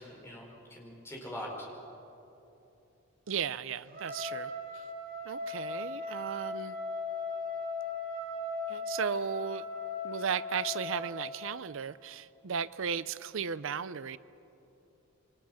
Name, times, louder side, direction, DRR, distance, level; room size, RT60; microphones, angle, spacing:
voice 1, 0.0-1.5, left 1 dB, 10° left, -2 dB, 4.6 m, -43 dB
voice 2, 3.3-4.8 5.2-6.8 8.7-9.7 10.0-14.2, right 7 dB, 65° right, 16 dB, 0.6 m, -35 dB
Trumpet, 3.9-11.2, left 3 dB, 45° right, 7.2 m, -38 dB
27.5 x 24.0 x 6.4 m, 2.9 s
head